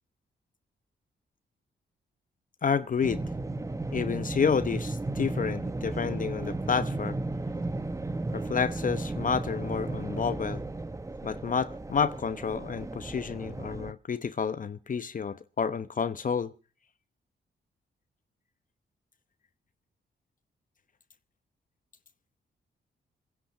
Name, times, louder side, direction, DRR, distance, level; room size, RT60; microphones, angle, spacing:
voice 1, 2.6-3.2 3.9-7.2 8.3-10.6 11.2-16.5, left 6 dB, 45° left, 0.9 m, -30 dB
sound 1, 3.0-13.9, right 2 dB, 15° right, 0.8 m, -34 dB
22.5 x 10.0 x 5.8 m
cardioid pair, 95°, 19 cm